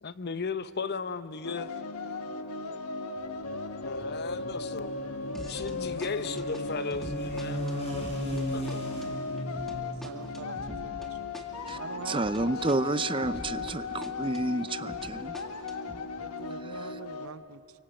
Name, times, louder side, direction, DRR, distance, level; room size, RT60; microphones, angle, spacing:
voice 1, 0.0-1.7 3.8-4.9 5.3-7.6 8.5-8.9, left 5 dB, 50° left, 13 dB, 0.8 m, -36 dB
sound 1, 1.4-17.3, left 3 dB, 85° left, 1.3 m, -37 dB
sound 2, 3.2-10.8, equal, 30° left, 6.7 m, -38 dB
sound 3, 5.3-5.8 6.0-13.8 14.0-16.0, equal, ahead, 2.0 m, -45 dB
voice 2, 9.8-10.6 10.8-11.2 11.7-12.3 16.2-17.8, right 4 dB, 70° right, 13 dB, 0.9 m, -43 dB
voice 3, 12.1-15.4, right 2 dB, 25° right, 14 dB, 0.6 m, -30 dB
29.5 x 24.5 x 7.8 m, 2.5 s
head